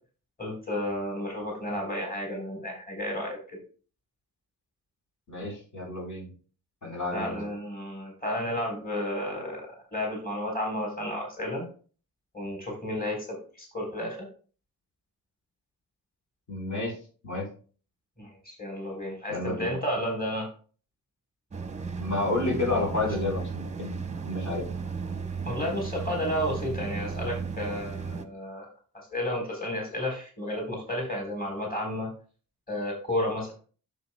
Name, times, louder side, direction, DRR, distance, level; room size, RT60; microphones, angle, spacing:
voice 1, 0.4-3.6 7.1-9.6 9.9-11.7 12.3-14.3 18.2-20.5 25.5-28.7 28.9-32.1 32.7-33.5, left 1 dB, 25° left, 0 dB, 3.9 m, -32 dB
voice 2, 5.3-6.3 6.8-7.4 16.5-17.0 17.2-17.5 19.3-19.7 22.0-24.6, left 2 dB, 60° left, -4 dB, 4.2 m, -30 dB
sound 1, 21.5-28.2, right 5 dB, 20° right, 0.8 m, -35 dB
10.5 x 7.5 x 2.2 m, 0.40 s
cardioid pair, 95°, 35 cm